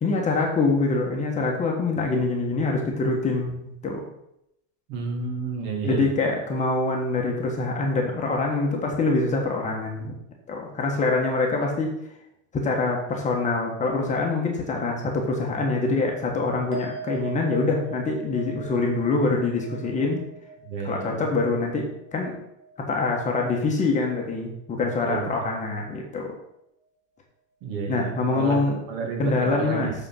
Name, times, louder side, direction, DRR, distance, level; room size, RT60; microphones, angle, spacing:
voice 1, 0.0-4.0 5.9-10.1 10.5-11.9 12.5-20.2 20.8-21.9 22.1-22.3 22.9-26.3 27.9-28.8 29.2-29.9, left 3 dB, 20° left, 0 dB, 1.3 m, -25 dB
voice 2, 4.9-6.1 20.6-21.2 25.1-25.3 27.6-28.6 28.9-29.9, right 5 dB, 50° right, 1 dB, 2.3 m, -30 dB
sound 1, 16.7-23.4 23.7-24.3, right 2 dB, 35° right, 1.5 m, -41 dB
7.8 x 4.3 x 5.8 m, 0.80 s
supercardioid pair, 145°, 36 cm